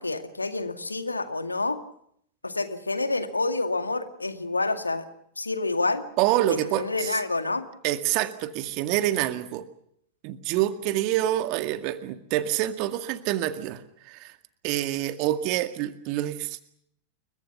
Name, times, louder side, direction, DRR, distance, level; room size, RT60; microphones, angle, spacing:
voice 1, 0.0-1.8 2.4-5.1 5.4-6.0 6.5-7.7, left 3 dB, 80° left, 8 dB, 2.1 m, -28 dB
voice 2, 6.2-7.2 7.8-9.7 10.2-14.4 14.6-16.6, right 13 dB, 45° right, 9 dB, 2.0 m, -27 dB
29.5 x 23.0 x 5.9 m, 0.70 s
figure-of-eight pair, 90°, 0 cm